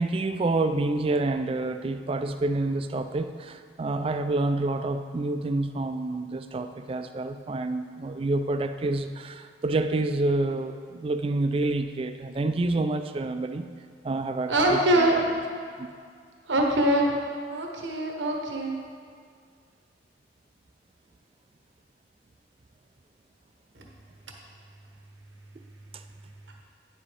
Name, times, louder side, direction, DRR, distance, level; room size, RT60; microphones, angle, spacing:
voice 1, 0.0-13.7 14.0-15.2 15.8-15.9, right 2 dB, 30° right, 9 dB, 0.3 m, -28 dB
voice 2, 14.5-15.4 16.4-17.2 17.5-18.8 23.7-23.8, right 1 dB, 90° right, 0 dB, 1.0 m, -23 dB
9.3 x 7.5 x 3.3 m, 2.1 s
head